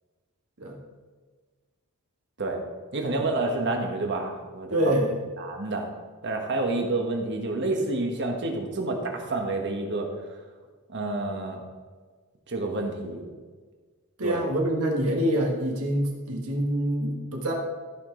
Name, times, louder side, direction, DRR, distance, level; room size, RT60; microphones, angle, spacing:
voice 1, 2.9-4.9 5.4-5.9 6.2-10.1 10.9-11.6 12.5-13.2 14.2-14.4, right 2 dB, 50° right, 2 dB, 1.4 m, -29 dB
voice 2, 4.7-5.2 14.2-17.5, equal, 75° right, 0 dB, 1.6 m, -26 dB
14.0 x 6.1 x 3.9 m, 1.4 s
head